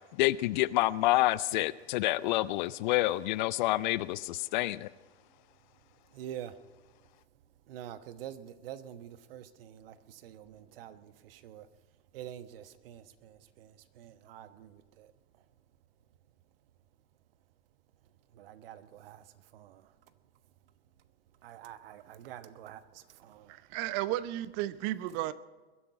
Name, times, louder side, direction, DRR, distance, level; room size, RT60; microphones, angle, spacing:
voice 1, 0.2-4.9, left 17 dB, 45° left, 0.5 m, -28 dB
voice 2, 6.1-6.5 7.7-11.7 12.1-15.1 18.3-19.2 19.5-19.8 21.4-23.5, right 11 dB, 55° right, 1.2 m, -47 dB
voice 3, 23.5-25.3, right 14 dB, 40° right, 0.8 m, -33 dB
22.0 x 11.0 x 4.8 m
hypercardioid pair, 105°, 33 cm